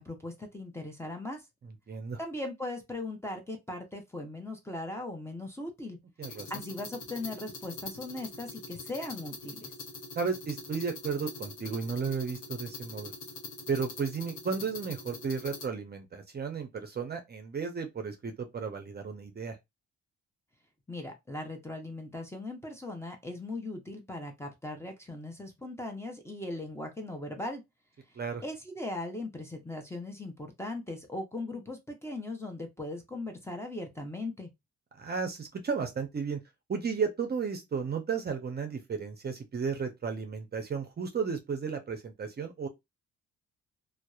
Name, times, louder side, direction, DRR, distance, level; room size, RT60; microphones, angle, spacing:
voice 1, 0.0-1.4 2.2-6.0 6.5-9.7 20.9-27.6 28.4-34.5, left 2 dB, 10° left, 0.6 m, -39 dB
voice 2, 1.6-2.2 6.2-6.5 10.1-13.1 13.7-19.6 28.2-28.4 35.0-36.4 36.7-42.7, right 5 dB, 35° right, 0.6 m, -34 dB
sound 1, 6.2-15.7, left 3 dB, 70° left, 1.0 m, -43 dB
2.8 x 2.0 x 2.3 m
cardioid pair, 90°, 30 cm